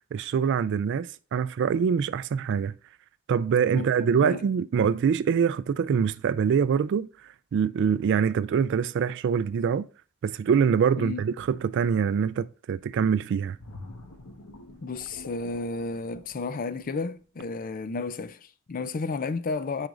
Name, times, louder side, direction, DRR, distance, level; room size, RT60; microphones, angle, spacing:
voice 1, 0.1-2.7 3.3-9.9 10.2-13.6, right 7 dB, 55° right, 0.3 m, -24 dB
sound 1, 13.6-17.2 17.6-17.8, left 2 dB, 90° left, 1.3 m, -46 dB
voice 2, 14.8-19.9, left 3 dB, 40° left, 0.4 m, -32 dB
9.2 x 4.9 x 2.5 m
head